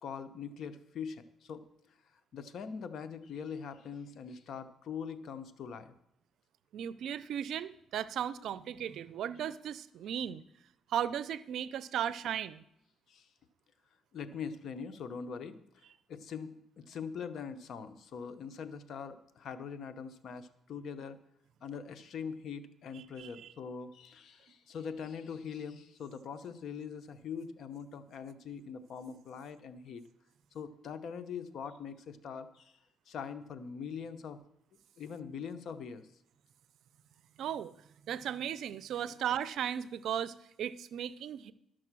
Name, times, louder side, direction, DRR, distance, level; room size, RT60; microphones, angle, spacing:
voice 1, 0.0-1.6 2.3-5.9 13.1-13.3 14.1-15.6 16.1-21.2 21.6-30.0 30.5-32.7 33.1-34.4 35.0-36.1 39.1-39.2, left 6 dB, 65° left, 10 dB, 0.8 m, -42 dB
voice 2, 6.7-10.4 10.9-12.6 23.0-23.3 37.4-37.7 38.1-41.5, right 9 dB, 75° right, 17 dB, 0.5 m, -36 dB
12.0 x 6.3 x 6.1 m, 0.78 s
cardioid pair, 90°, 0 cm